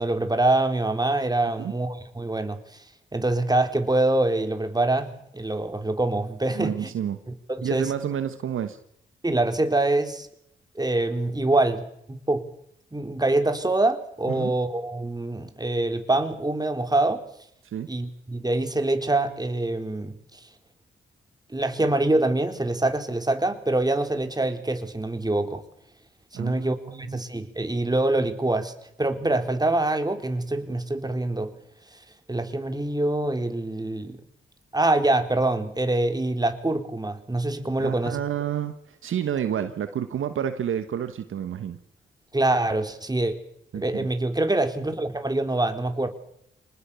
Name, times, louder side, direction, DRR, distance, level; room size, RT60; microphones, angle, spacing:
voice 1, 0.0-2.6 3.1-6.9 7.5-7.9 9.2-10.3 10.8-11.8 12.3-12.5 12.9-17.2 17.9-20.4 21.5-25.6 26.3-28.7 29.0-31.5 32.3-34.2 34.7-38.2 42.3-43.3 43.7-46.1, right 2 dB, 20° right, 3.8 m, -25 dB
voice 2, 6.5-7.2 7.6-8.8 14.3-14.5 17.6-17.9 26.3-27.2 37.8-41.8 43.7-44.1, right 9 dB, 70° right, 1.3 m, -30 dB
26.0 x 19.5 x 7.0 m
supercardioid pair, 50°, 21 cm